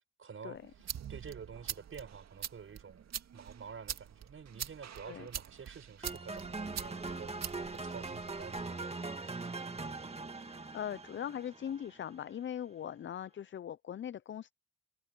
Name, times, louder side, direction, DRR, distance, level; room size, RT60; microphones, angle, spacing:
voice 1, 0.2-9.5, right 6 dB, 45° right, 5.9 m, -50 dB
sound 1, 0.5-8.6, right 9 dB, 60° right, 2.2 m, -45 dB
sound 2, 6.0-12.1, right 3 dB, 20° right, 2.1 m, -41 dB
voice 2, 10.4-14.5, left 9 dB, 40° left, 0.6 m, -40 dB
cardioid pair, 90°, 30 cm